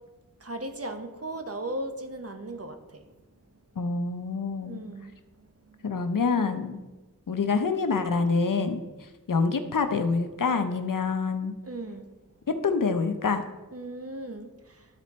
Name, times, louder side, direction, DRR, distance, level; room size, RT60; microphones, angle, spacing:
voice 1, 0.4-3.0 4.6-5.8 11.6-12.1 13.7-14.9, right 1 dB, 45° right, 6 dB, 1.0 m, -37 dB
voice 2, 3.8-4.8 5.8-6.8 7.3-8.8 9.3-11.6 12.6-13.4, left 4 dB, 65° left, 8 dB, 0.7 m, -26 dB
12.5 x 4.2 x 4.2 m, 1.2 s
wide cardioid pair, 50°, 34 cm